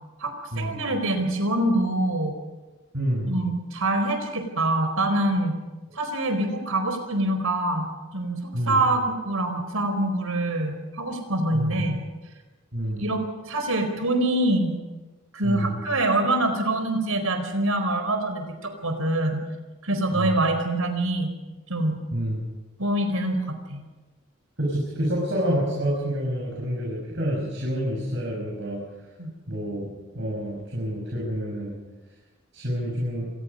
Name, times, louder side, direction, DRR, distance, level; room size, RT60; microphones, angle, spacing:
voice 1, 0.2-2.3 3.3-5.6 5.9-8.4 8.7-12.0 13.0-14.8 15.3-19.4 19.8-21.3 21.7-22.0 22.8-23.8 29.2-29.3, right 1 dB, 80° right, 7 dB, 4.4 m, -25 dB
voice 2, 2.9-3.3 8.5-8.8 11.5-11.9 12.7-13.0 15.4-15.8 20.1-20.4 22.1-22.4 24.6-28.8 29.5-31.8 32.5-33.3, equal, 55° right, -3 dB, 6.2 m, -28 dB
26.5 x 19.5 x 5.4 m, 1.2 s
head